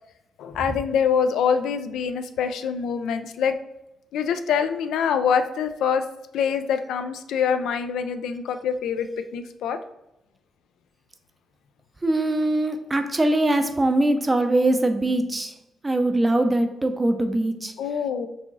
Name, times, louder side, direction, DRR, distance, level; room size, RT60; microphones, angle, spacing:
voice 1, 0.4-3.6 4.1-6.0 6.3-9.8 17.8-18.3, left 7 dB, 85° left, 8 dB, 0.3 m, -25 dB
voice 2, 12.0-15.5 15.8-17.7, right 1 dB, 20° right, 8 dB, 0.5 m, -22 dB
4.7 x 2.9 x 3.9 m, 0.89 s
cardioid pair, 105°, 0 cm